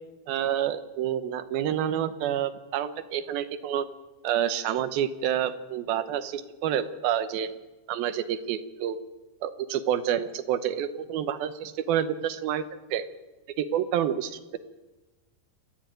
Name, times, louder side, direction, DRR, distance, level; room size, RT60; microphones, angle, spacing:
voice 1, 0.3-3.9 4.2-7.5 7.9-9.0 9.4-12.7 12.9-13.0 13.6-14.6, right 10 dB, 70° right, 11 dB, 2.6 m, -28 dB
29.0 x 12.0 x 9.1 m, 1.2 s
omnidirectional pair, 5.0 m